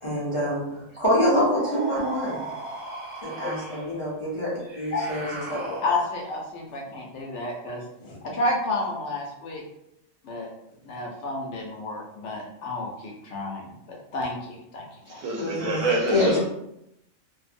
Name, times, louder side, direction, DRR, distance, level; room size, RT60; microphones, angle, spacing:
voice 1, 0.0-2.4 3.2-5.8 15.4-15.8 16.1-16.4, left 1 dB, 35° left, 0.5 m, -26 dB
sound 1, 1.5-4.0 4.6-6.3, right 2 dB, 55° right, 0.7 m, -37 dB
voice 2, 5.8-9.6 10.2-10.5 10.8-15.2, left 2 dB, 70° left, 0.8 m, -31 dB
voice 3, 15.1-16.4, right 2 dB, 80° right, 1.0 m, -26 dB
2.5 x 2.1 x 2.5 m
omnidirectional pair, 1.4 m